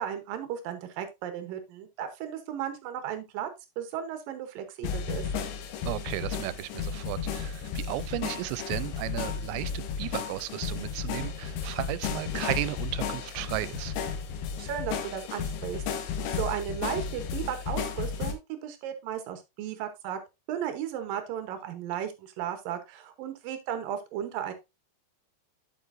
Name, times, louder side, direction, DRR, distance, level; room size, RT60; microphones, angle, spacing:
voice 1, 0.0-3.5 3.8-5.3 14.6-20.2 20.5-24.5, right 9 dB, 70° right, 2.3 m, -35 dB
sound 1, 4.8-18.3, left 6 dB, 85° left, 3.4 m, -33 dB
voice 2, 5.9-13.9, right 17 dB, 85° right, 2.8 m, -34 dB
8.4 x 7.7 x 2.6 m
omnidirectional pair, 5.0 m